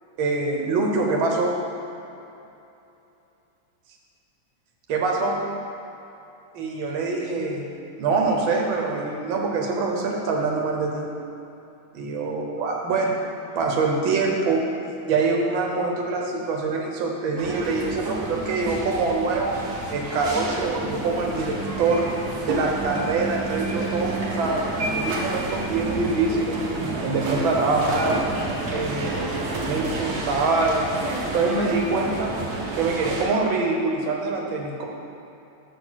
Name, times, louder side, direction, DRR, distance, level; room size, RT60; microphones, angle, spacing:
voice 1, 0.2-1.6 4.9-5.4 6.5-7.7 8.0-11.1 11.9-13.1 13.6-14.6 15.1-19.6 19.9-22.1 22.5-26.6 27.0-28.3 28.7-29.2 29.6-32.3 32.8-34.9, right 3 dB, 75° right, 0 dB, 1.7 m, -24 dB
sound 1, 17.4-33.2, right 2 dB, 55° right, 1.4 m, -30 dB
7.5 x 4.3 x 6.2 m, 2.8 s
omnidirectional pair, 2.2 m